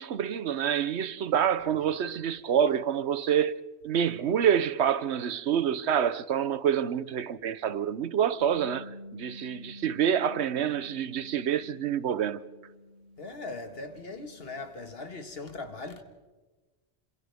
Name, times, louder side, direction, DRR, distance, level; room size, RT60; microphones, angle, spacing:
voice 1, 0.0-3.6 3.8-12.4, right 9 dB, 90° right, 1.1 m, -27 dB
Bass guitar, 8.4-14.6, left 1 dB, 50° right, 8.2 m, -48 dB
voice 2, 13.2-16.0, left 3 dB, 65° left, 2.0 m, -39 dB
28.0 x 26.5 x 3.5 m
omnidirectional pair, 1.1 m